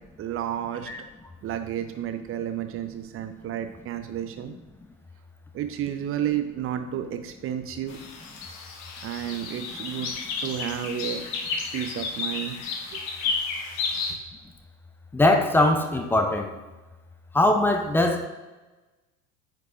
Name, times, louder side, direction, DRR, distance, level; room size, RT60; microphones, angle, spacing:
voice 1, 0.2-0.9 1.4-4.5 5.5-8.0 9.0-10.1 10.4-11.2 11.7-12.6 12.9-13.0 14.1-14.2, right 10 dB, 30° right, 8 dB, 0.7 m, -31 dB
sound 1, 7.9-14.1, left 4 dB, 55° left, 1.1 m, -32 dB
voice 2, 15.1-16.5 17.3-18.3, left 1 dB, 5° left, 5 dB, 0.3 m, -21 dB
9.3 x 4.7 x 2.5 m, 1.2 s
figure-of-eight pair, 70°, 44 cm